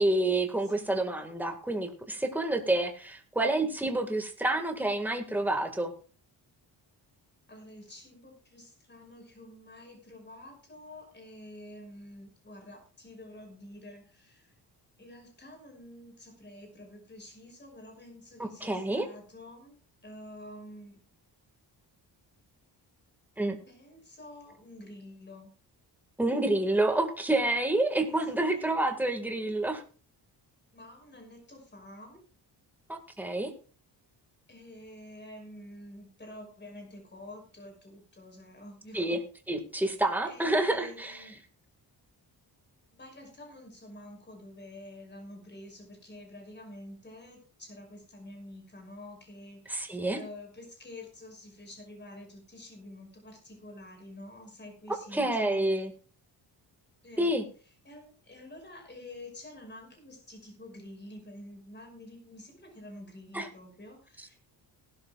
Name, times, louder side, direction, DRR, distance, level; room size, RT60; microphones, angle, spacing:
voice 1, 0.0-5.9 18.4-19.1 23.4-23.6 26.2-29.8 32.9-33.5 38.9-39.2 39.5-41.2 49.7-50.2 55.1-55.9 57.2-57.4 63.3-63.5, right 2 dB, 5° right, 4 dB, 1.9 m, -28 dB
voice 2, 0.6-1.0 7.5-14.5 15.0-19.8 20.0-21.0 23.7-25.5 28.2-28.7 30.7-32.2 34.5-39.2 39.9-41.4 42.9-55.7 57.0-57.3 57.8-64.4, left 1 dB, 25° left, 3 dB, 5.6 m, -48 dB
18.5 x 12.0 x 2.4 m, 0.37 s
cardioid pair, 120°, 42 cm